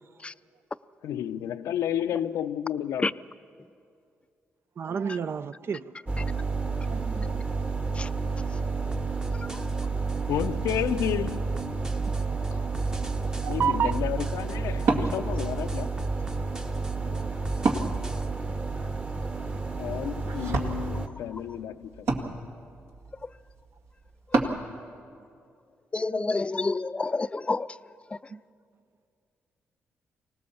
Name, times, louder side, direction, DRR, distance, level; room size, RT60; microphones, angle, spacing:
voice 1, 1.0-3.2 7.2-7.4 10.3-11.5 12.5-12.6 13.5-16.1 19.8-22.2, left 10 dB, 85° left, 0.6 m, -31 dB
voice 2, 4.8-5.9 6.9-7.4 13.4-13.9 17.2-17.3 26.1-26.3 28.3-28.4, right 7 dB, 55° right, 0.5 m, -30 dB
sound 1, 6.1-21.1, right 4 dB, 30° right, 1.4 m, -30 dB
sound 2, 8.9-18.3, right 1 dB, 15° right, 0.9 m, -39 dB
Wood, 13.4-24.6, right 3 dB, 70° right, 2.0 m, -34 dB
voice 3, 25.9-27.7, left 3 dB, 25° left, 0.5 m, -28 dB
24.5 x 18.5 x 7.0 m
cardioid pair, 70°, 5 cm